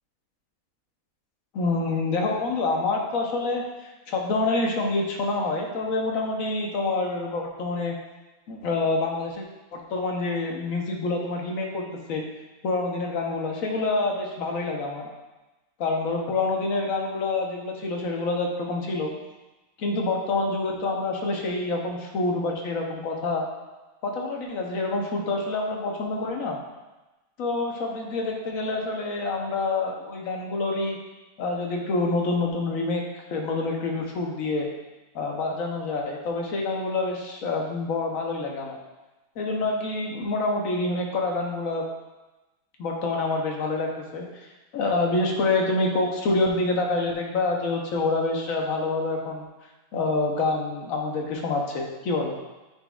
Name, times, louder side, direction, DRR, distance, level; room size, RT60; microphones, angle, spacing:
voice 1, 1.5-8.0 8.5-9.4 9.7-12.2 12.6-15.1 15.8-19.1 19.8-23.4 24.0-26.6 27.4-31.0 31.4-33.0 33.3-34.7 35.1-38.8 39.4-41.8 42.8-44.5 44.7-49.5 49.9-52.4, left 3 dB, 65° left, 1 dB, 1.2 m, -27 dB
9.4 x 4.4 x 2.3 m, 1.1 s
omnidirectional pair, 1.6 m